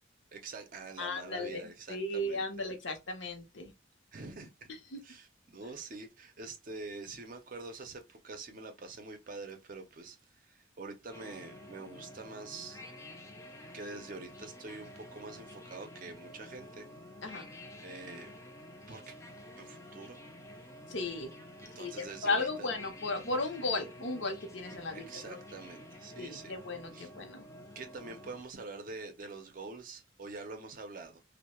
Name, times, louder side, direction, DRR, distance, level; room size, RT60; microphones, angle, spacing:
voice 1, 0.3-2.5 4.1-4.7 5.0-12.8 13.7-16.9 17.2-17.4 17.8-18.3 18.9-19.2 19.6-20.2 20.6-20.7 21.6-22.8 24.9-26.5 26.9-27.1 27.8-31.2, right 3 dB, 45° right, 0.5 m, -46 dB
voice 2, 1.0-1.6 1.9-3.7 4.9-5.0 17.2-17.5 20.9-21.3 21.8-25.4 26.2-27.4, left 2 dB, 65° left, 0.6 m, -35 dB
sound 1, 11.1-28.4, left 1 dB, 15° left, 0.4 m, -50 dB
2.2 x 2.0 x 2.9 m
head